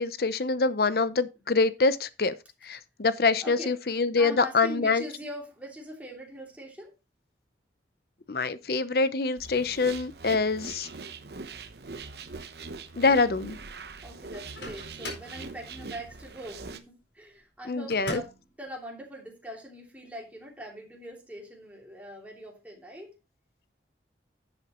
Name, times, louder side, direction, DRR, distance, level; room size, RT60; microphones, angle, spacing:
voice 1, 0.0-2.3 2.6-5.0 8.3-10.9 13.0-13.6 17.7-18.2, left 4 dB, 60° left, 0.7 m, -25 dB
voice 2, 3.4-3.7 4.2-6.9 14.0-18.3 18.6-23.1, equal, 10° right, 2.9 m, -42 dB
sound 1, 9.4-16.8, right 4 dB, 65° right, 0.9 m, -42 dB
Microwave oven, 14.3-15.4 17.9-18.5, left 1 dB, 80° left, 4.2 m, -39 dB
11.0 x 8.4 x 3.0 m
head